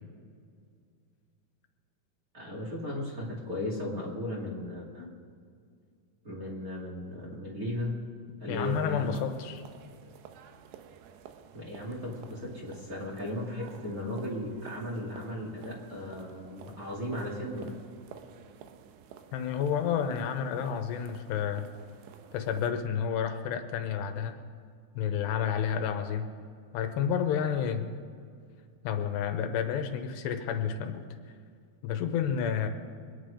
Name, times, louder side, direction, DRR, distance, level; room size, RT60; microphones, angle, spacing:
voice 1, 2.3-5.1 6.2-7.9 8.4-9.2 11.5-17.7, left 1 dB, 30° right, -3 dB, 1.9 m, -36 dB
voice 2, 8.5-9.6 19.3-21.7 22.3-24.4 24.9-26.3 26.7-27.9 28.8-31.0 31.8-32.7, left 8 dB, 85° left, 6 dB, 3.1 m, -30 dB
sound 1, 8.5-22.7, right 8 dB, 85° right, 3.1 m, -52 dB
24.5 x 10.0 x 5.1 m, 2.2 s
omnidirectional pair, 4.9 m